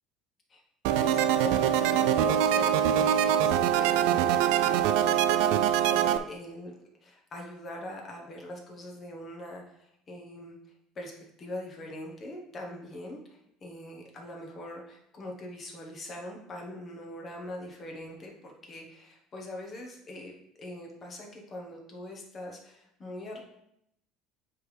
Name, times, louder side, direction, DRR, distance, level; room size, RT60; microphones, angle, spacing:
sound 1, 0.8-6.2, right 10 dB, 75° right, 0.3 m, -24 dB
voice 1, 0.9-6.7 7.0-10.6 10.9-11.1 11.4-20.3 20.6-23.4, left 1 dB, 25° left, 0 dB, 1.2 m, -42 dB
9.2 x 3.5 x 3.3 m, 0.79 s
cardioid pair, 140°, 0 cm